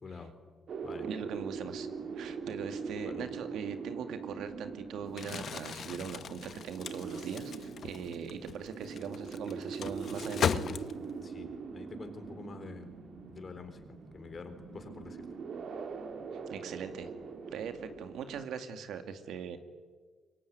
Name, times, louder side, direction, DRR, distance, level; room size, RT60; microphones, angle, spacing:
voice 1, 0.0-0.3 0.8-1.1 3.0-3.3 11.2-12.9 13.3-13.8 14.1-15.2, left 4 dB, 40° left, 8 dB, 4.1 m, -46 dB
sound 1, 0.7-18.5, right 5 dB, 60° right, 3.2 m, -42 dB
voice 2, 1.0-1.9 2.1-10.6 16.5-17.1 17.5-19.6, right 7 dB, 75° right, 8 dB, 2.3 m, -41 dB
Crumpling crinkling, 5.1-11.3, left 7 dB, 55° left, 1.0 m, -37 dB
25.0 x 22.5 x 9.6 m, 1.5 s
cardioid pair, 90°, 0 cm